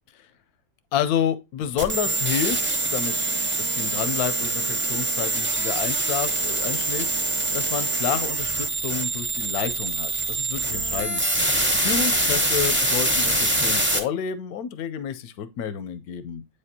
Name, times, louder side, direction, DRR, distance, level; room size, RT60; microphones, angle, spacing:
voice 1, 0.9-3.3 3.6-11.2 11.7-16.4, left 8 dB, 90° left, 1.1 m, -29 dB
sound 1, 1.8-14.0, right 2 dB, 10° right, 0.6 m, -24 dB
8.4 x 5.1 x 2.7 m
omnidirectional pair, 1.5 m